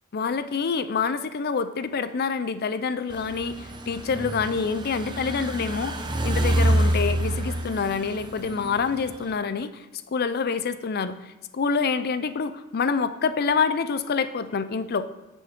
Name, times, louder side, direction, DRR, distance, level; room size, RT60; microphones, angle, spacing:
voice 1, 0.1-5.9 6.2-9.9 10.1-11.2 11.5-15.1, left 5 dB, 50° left, 13 dB, 0.5 m, -26 dB
sound 1, 3.1-9.3, right 1 dB, 20° right, 0.8 m, -27 dB
9.7 x 6.4 x 4.4 m, 1.1 s
head